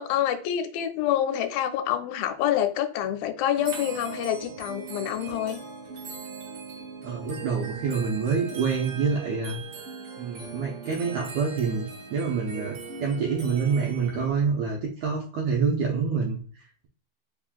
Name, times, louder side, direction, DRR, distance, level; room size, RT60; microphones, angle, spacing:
voice 1, 0.0-5.6, left 11 dB, 85° left, 2.4 m, -27 dB
sound 1, 3.6-14.3, right 5 dB, 60° right, 1.5 m, -39 dB
voice 2, 7.0-9.6 10.2-16.4, right 5 dB, 85° right, 1.6 m, -27 dB
5.3 x 3.6 x 2.4 m
omnidirectional pair, 4.1 m